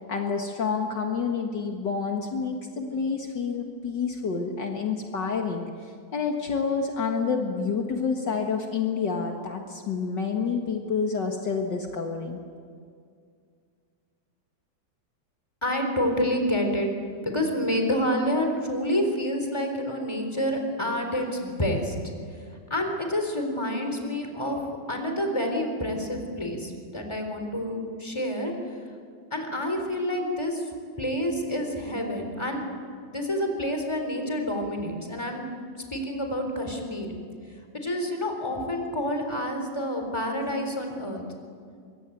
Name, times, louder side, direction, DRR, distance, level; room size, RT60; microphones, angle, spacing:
voice 1, 0.1-12.4, left 5 dB, 60° left, 2 dB, 2.2 m, -28 dB
voice 2, 15.6-16.9 17.2-22.0 22.7-24.6 24.9-28.5 29.3-30.6 31.0-32.6 33.0-35.4 35.9-37.1 37.7-41.2, equal, 15° left, 4 dB, 3.9 m, -28 dB
24.0 x 23.5 x 9.2 m, 2.2 s
omnidirectional pair, 2.2 m